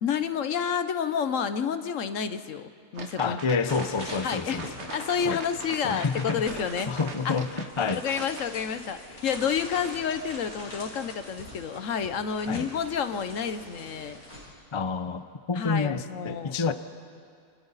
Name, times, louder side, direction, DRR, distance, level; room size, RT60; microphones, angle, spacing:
voice 1, 0.0-3.4 4.2-4.6 4.9-6.9 7.2-7.3 7.9-14.2 15.6-16.6, left 7 dB, 65° left, 10 dB, 1.2 m, -29 dB
sound 1, 3.0-8.5, right 4 dB, 50° right, 1.3 m, -41 dB
voice 2, 3.2-4.9 5.2-5.4 5.8-8.0 12.5-12.7 14.7-16.7, left 5 dB, 40° left, 10 dB, 0.4 m, -29 dB
sound 2, 3.7-14.5, left 1 dB, 90° left, 5.7 m, -43 dB
28.5 x 26.5 x 4.1 m, 2.3 s
omnidirectional pair, 1.6 m